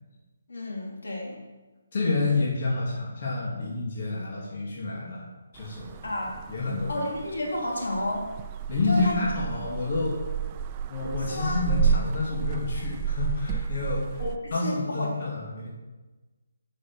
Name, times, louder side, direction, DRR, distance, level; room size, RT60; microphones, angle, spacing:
voice 1, 0.5-1.4 6.0-6.4 6.9-8.3 8.9-9.2 11.3-11.6 14.2-15.1, left 1 dB, 75° left, -2 dB, 3.1 m, -31 dB
voice 2, 1.9-5.3 5.5-6.0 6.5-6.9 8.7-10.2 10.9-14.2 14.5-15.7, left 3 dB, 50° left, -4 dB, 2.5 m, -28 dB
sound 1, 5.5-14.4, right 7 dB, 25° right, 0.5 m, -31 dB
8.3 x 6.5 x 6.2 m, 1.2 s
hypercardioid pair, 155°, 0 cm